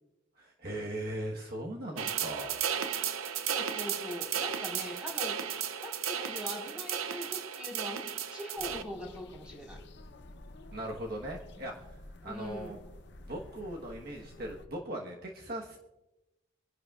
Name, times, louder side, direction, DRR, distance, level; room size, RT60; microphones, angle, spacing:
voice 1, 0.4-2.6 10.7-11.9 12.2-12.8 13.3-15.8, right 1 dB, 45° right, -1 dB, 1.3 m, -39 dB
sound 1, 2.0-8.8, right 8 dB, 85° right, 0.7 m, -34 dB
voice 2, 3.5-5.4 5.8-9.8 11.6-11.7 12.2-12.9, left 1 dB, 5° right, -2 dB, 4.2 m, -42 dB
sound 2, 8.6-14.7, left 1 dB, 55° left, 0.7 m, -51 dB
25.5 x 11.0 x 2.4 m, 0.99 s
head